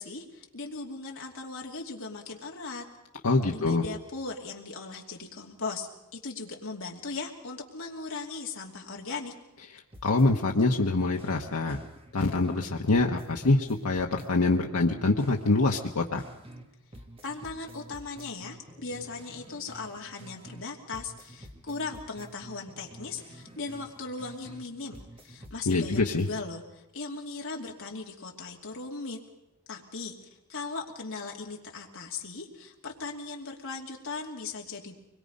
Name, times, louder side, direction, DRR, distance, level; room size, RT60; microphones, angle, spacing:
voice 1, 0.0-2.9 3.5-9.3 17.2-29.2 29.7-30.2 30.5-34.9, left 3 dB, 60° left, 0 dB, 2.7 m, -38 dB
voice 2, 3.2-3.8 10.0-11.8 12.1-16.2 25.7-26.3, left 2 dB, 80° left, 1 dB, 1.2 m, -25 dB
sound 1, 9.9-12.7 12.9-16.7 16.9-20.7 20.9-24.7 24.9-26.4, right 1 dB, 25° right, 1.8 m, -49 dB
24.5 x 21.5 x 5.4 m, 0.88 s
head